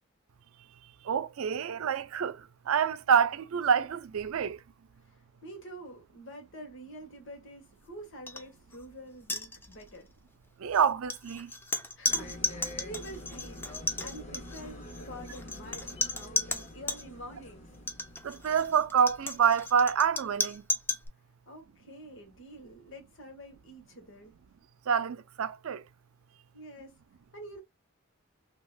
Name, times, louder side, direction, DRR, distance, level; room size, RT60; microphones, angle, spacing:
voice 1, 1.1-2.4 2.7-4.6 10.6-11.5 18.2-20.6 24.9-25.8, right 7 dB, 80° right, 0.4 m, -27 dB
voice 2, 5.0-10.1 12.0-13.6 14.0-17.7 21.5-24.3 26.5-26.9 27.3-27.6, right 1 dB, 60° left, 1.3 m, -47 dB
sound 1, 8.3-8.4 8.7-8.9 9.2-10.0 10.7-17.0 17.7-21.1, left 3 dB, 10° left, 0.3 m, -34 dB
sound 2, 12.1-19.8, left 1 dB, 30° left, 0.9 m, -46 dB
3.4 x 2.8 x 2.3 m
head